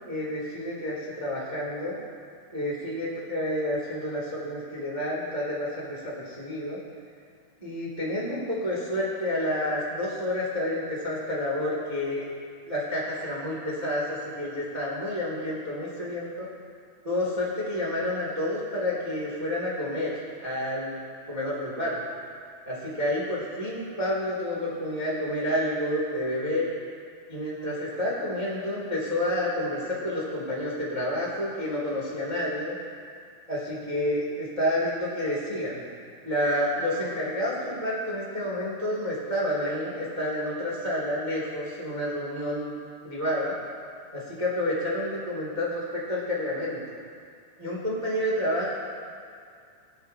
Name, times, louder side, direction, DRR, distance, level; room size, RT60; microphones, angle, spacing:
voice 1, 0.1-2.0 2.5-6.8 7.6-12.2 12.7-16.5 17.0-20.1 20.4-21.0 21.3-22.0 22.6-26.6 27.3-32.7 33.5-35.8 36.2-42.7 43.0-43.6 44.1-47.0 47.6-48.7, left 1 dB, 70° right, -6 dB, 0.3 m, -29 dB
23.0 x 8.4 x 2.8 m, 2.3 s
omnidirectional pair, 5.5 m